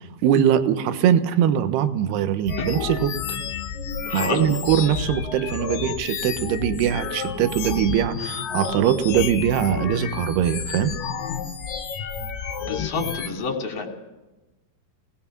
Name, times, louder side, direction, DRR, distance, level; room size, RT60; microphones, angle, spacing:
voice 1, 0.2-3.1 4.1-10.9, right 10 dB, 75° right, 10 dB, 3.1 m, -22 dB
sound 1, 2.5-13.3, left 7 dB, 65° left, 2.7 m, -30 dB
voice 2, 4.1-4.6 12.6-13.9, left 4 dB, 40° left, 2 dB, 3.3 m, -28 dB
26.0 x 19.0 x 6.0 m, 1.1 s
omnidirectional pair, 4.9 m